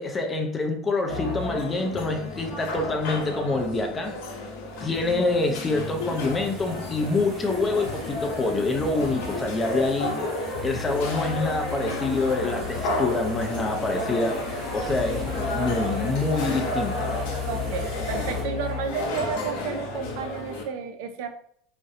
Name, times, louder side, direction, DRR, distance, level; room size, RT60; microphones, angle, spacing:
voice 1, 0.0-4.1 4.8-10.2 10.6-17.1, left 3 dB, 20° left, 4 dB, 0.4 m, -26 dB
sound 1, 1.1-20.6, left 2 dB, 70° left, 0.6 m, -31 dB
sound 2, 4.9-18.4, equal, 30° right, 1.0 m, -41 dB
voice 2, 17.4-21.3, right 6 dB, 70° right, 7 dB, 0.3 m, -32 dB
2.4 x 2.0 x 2.7 m, 0.64 s
supercardioid pair, 145°, 0 cm